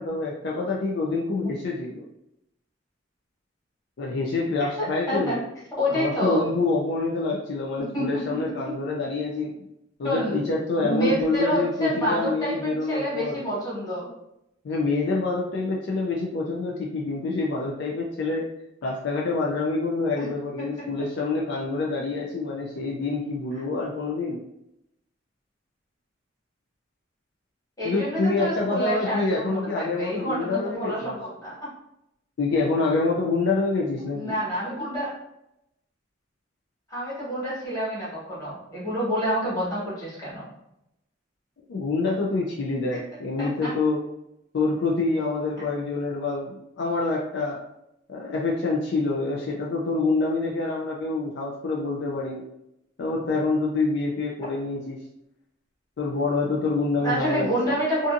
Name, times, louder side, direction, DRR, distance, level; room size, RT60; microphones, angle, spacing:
voice 1, 0.0-2.0 4.0-5.4 5.9-9.5 10.0-13.4 14.6-18.5 18.8-24.4 27.8-31.2 32.4-34.3 41.7-44.0 44.5-47.6 48.1-52.4 53.0-55.0 56.0-57.7, left 3 dB, 60° left, -2 dB, 0.4 m, -26 dB
voice 2, 5.8-6.5 7.8-8.7 10.0-10.5 10.8-14.1 20.2-20.3 27.8-31.7 34.1-35.1 36.9-40.5 43.4-43.7 45.6-45.7 57.0-58.1, equal, 20° left, -7 dB, 1.2 m, -28 dB
2.6 x 2.5 x 2.4 m, 0.82 s
head